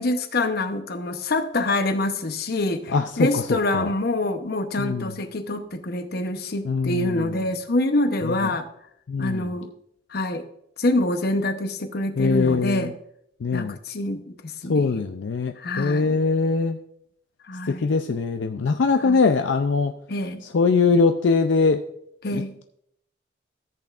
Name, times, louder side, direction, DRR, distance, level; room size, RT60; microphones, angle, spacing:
voice 1, 0.0-8.7 9.2-9.7 10.1-10.4 10.8-12.9 13.5-15.0 15.6-16.2 17.5-17.9 19.0-19.2 20.1-20.4 22.2-22.5, left 2 dB, 60° left, 8 dB, 0.9 m, -26 dB
voice 2, 2.9-3.4 3.7-3.9 4.8-5.1 6.7-7.3 8.2-8.5 9.1-9.5 12.2-12.8 13.4-13.8 14.7-16.8 17.7-19.9 20.5-21.8 22.3-22.4, left 4 dB, 80° left, 7 dB, 0.5 m, -22 dB
14.0 x 8.1 x 2.5 m, 0.73 s
head